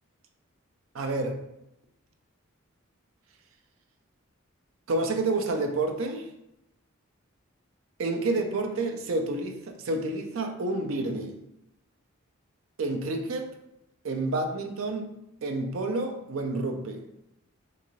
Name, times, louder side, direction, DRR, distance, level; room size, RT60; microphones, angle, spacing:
voice 1, 0.9-1.4 4.9-6.3 8.0-11.4 12.8-13.5 14.0-15.1 15.4-17.0, right 2 dB, 65° right, 0.5 m, -29 dB
3.8 x 2.6 x 3.0 m
head